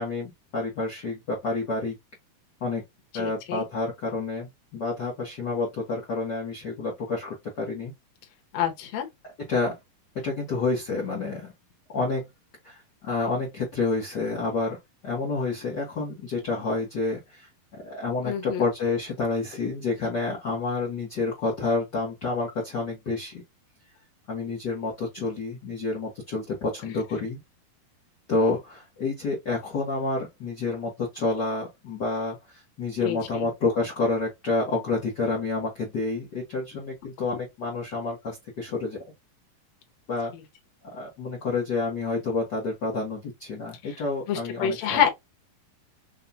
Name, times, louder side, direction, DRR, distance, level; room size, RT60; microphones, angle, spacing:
voice 1, 0.0-2.0 2.6-2.8 3.1-7.9 9.5-9.8 10.1-11.5 11.9-12.3 12.6-14.8 15.0-23.4 24.3-27.4 28.3-39.0 40.1-40.3 40.9-45.0, left 3 dB, 90° left, 0.9 m, -29 dB
voice 2, 3.1-3.6 8.5-9.1 18.2-18.7 33.0-33.5 43.8-43.9 44.3-45.1, left 9 dB, 65° left, 1.8 m, -27 dB
5.7 x 2.3 x 2.6 m
omnidirectional pair, 4.1 m